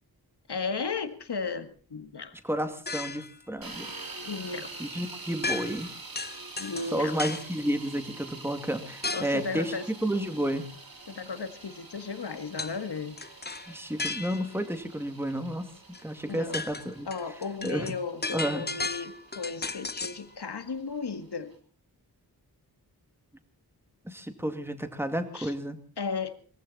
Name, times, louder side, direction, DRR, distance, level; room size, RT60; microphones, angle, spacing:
voice 1, 0.5-2.4 4.2-4.7 6.6-7.2 9.1-9.9 11.1-13.2 16.3-16.6 17.1-21.5 25.3-25.5 26.0-26.4, left 5 dB, 85° left, 1.9 m, -35 dB
voice 2, 2.4-3.9 4.8-5.9 6.9-9.7 10.0-10.7 13.7-15.7 16.0-17.1 17.6-17.9 18.3-18.6 24.0-25.8, right 1 dB, 5° right, 2.3 m, -31 dB
sound 1, 2.9-3.4 5.4-5.9 6.1-7.5 9.0-9.4 12.6-12.8 13.2-14.6 15.9-16.0 16.3-20.2, left 3 dB, 25° left, 0.8 m, -35 dB
sound 2, 3.6-21.6, right 3 dB, 60° right, 3.4 m, -46 dB
23.0 x 15.0 x 4.2 m
wide cardioid pair, 85°, 39 cm